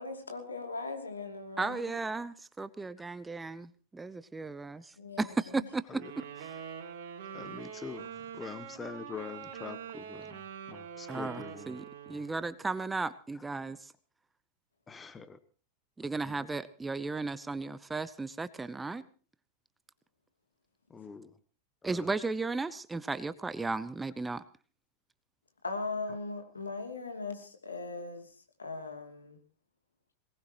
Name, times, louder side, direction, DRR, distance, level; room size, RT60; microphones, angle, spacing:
voice 1, 0.0-2.0 5.0-5.7 25.6-28.3 28.6-29.4, left 3 dB, 75° left, 4 dB, 2.8 m, -39 dB
voice 2, 1.6-5.8 11.1-13.8 16.0-19.0 21.8-24.4, right 3 dB, 10° right, 16 dB, 0.7 m, -35 dB
voice 3, 5.9-6.2 7.3-10.4 10.7-11.8 12.1-12.2 13.3-13.4 14.9-15.4 16.2-16.5 20.9-21.3 21.8-22.2, left 5 dB, 15° left, 14 dB, 1.1 m, -44 dB
sound 1, 6.0-12.5, right 8 dB, 55° right, 3.1 m, -44 dB
22.0 x 19.0 x 3.0 m, 0.39 s
figure-of-eight pair, 90°, 0 cm